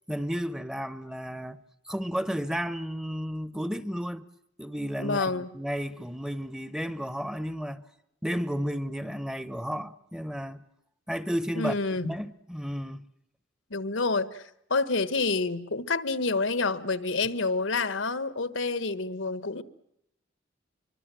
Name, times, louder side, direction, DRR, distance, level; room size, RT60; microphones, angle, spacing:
voice 1, 0.1-4.3 4.6-7.8 8.2-10.6 11.1-13.1, equal, 5° right, 0.9 m, -33 dB
voice 2, 5.0-5.5 11.6-12.1 13.7-19.6, left 3 dB, 80° left, 1.3 m, -28 dB
25.5 x 24.0 x 7.6 m
head